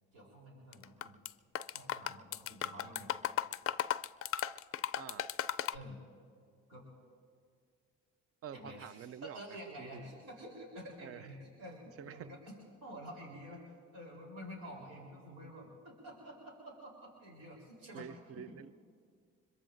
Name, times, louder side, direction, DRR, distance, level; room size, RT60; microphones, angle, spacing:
voice 1, 0.1-1.2 1.7-3.1 5.7-6.0 6.7-6.8 8.5-12.5 12.8-13.6 13.9-18.6, equal, 90° right, 3.8 m, -49 dB
sound 1, 0.7-1.3 1.6-5.8, left 11 dB, 50° left, 0.4 m, -35 dB
voice 2, 5.0-5.3 8.4-9.4 9.8-10.0 11.0-11.3 12.0-12.3 17.9-18.7, right 8 dB, 50° right, 0.5 m, -47 dB
25.0 x 22.0 x 2.6 m
cardioid pair, 90°, 30 cm